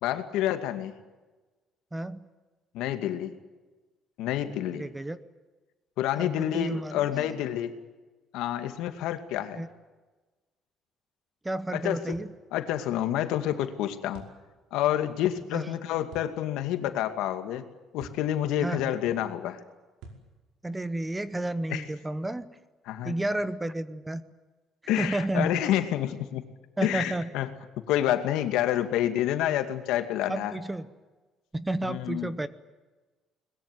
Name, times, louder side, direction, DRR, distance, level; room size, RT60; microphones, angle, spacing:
voice 1, 0.0-0.9 2.7-3.3 4.2-4.9 6.0-7.7 8.3-9.6 11.7-12.2 12.5-14.2 14.7-17.7 17.9-19.6 21.7-21.8 22.9-23.2 24.9-26.4 26.8-27.5 27.9-30.5 31.9-32.3, left 12 dB, 85° left, 9 dB, 2.3 m, -28 dB
voice 2, 1.9-2.2 4.7-5.2 6.2-7.4 9.6-9.7 11.4-12.3 15.5-15.7 18.6-19.0 20.6-22.5 23.0-24.2 25.0-25.6 26.8-27.3 30.3-30.9 31.5-32.5, right 1 dB, 10° right, 14 dB, 0.9 m, -31 dB
sound 1, 12.1-12.4 14.1-14.4 16.1-16.3 18.0-18.3 20.0-20.3, right 3 dB, 85° right, 5.3 m, -47 dB
22.5 x 21.0 x 9.4 m, 1.2 s
cardioid pair, 180°, 0 cm